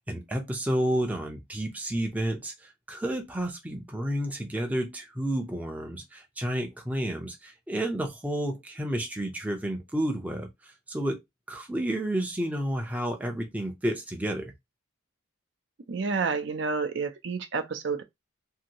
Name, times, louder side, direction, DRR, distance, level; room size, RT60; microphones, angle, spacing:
voice 1, 0.1-11.2 11.5-14.5, right 1 dB, 5° right, 0.5 m, -31 dB
voice 2, 15.9-18.0, right 4 dB, 60° right, 0.5 m, -29 dB
2.7 x 2.6 x 2.8 m
head